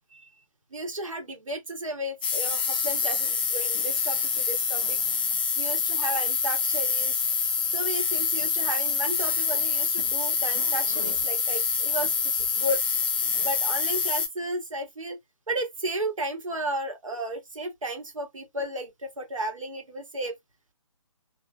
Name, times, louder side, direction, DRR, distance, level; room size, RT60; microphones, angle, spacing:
voice 1, 0.7-5.0 5.6-7.2 7.7-12.8 13.4-15.2 15.5-20.4, right 1 dB, 65° right, 1.7 m, -33 dB
sound 1, 2.2-14.3, left 5 dB, 15° left, 0.3 m, -26 dB
3.8 x 2.9 x 2.3 m
figure-of-eight pair, 145°, 18 cm